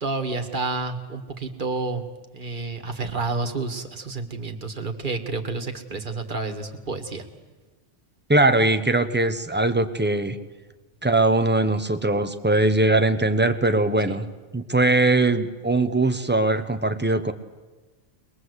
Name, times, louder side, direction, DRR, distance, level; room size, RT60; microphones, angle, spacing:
voice 1, 0.0-2.1 2.3-7.2 14.1-14.2, right 3 dB, 45° right, 5 dB, 1.9 m, -30 dB
voice 2, 8.3-10.4 11.0-14.3 14.5-17.3, right 2 dB, 10° right, 9 dB, 0.9 m, -21 dB
22.0 x 21.0 x 8.1 m, 1.3 s
omnidirectional pair, 1.2 m